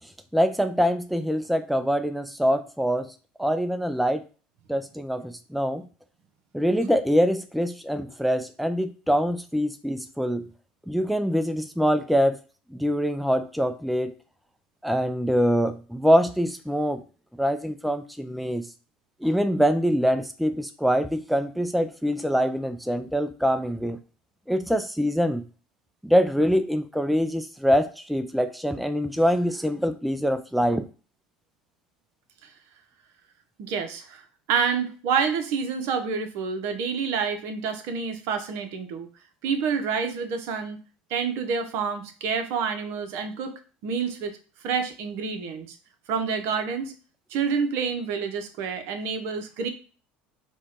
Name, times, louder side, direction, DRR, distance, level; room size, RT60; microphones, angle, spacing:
voice 1, 0.3-3.1 3.4-4.2 4.7-5.9 6.5-10.5 10.9-12.4 12.7-14.1 14.8-17.0 17.4-18.7 19.2-24.0 24.5-25.4 26.0-30.8, equal, ahead, 9 dB, 0.4 m, -24 dB
voice 2, 33.6-39.1 39.4-40.8 41.1-44.4 44.6-45.7 46.1-46.9 47.3-49.7, right 6 dB, 65° right, 7 dB, 0.8 m, -28 dB
4.3 x 2.3 x 4.5 m, 0.36 s
hypercardioid pair, 75°, 5 cm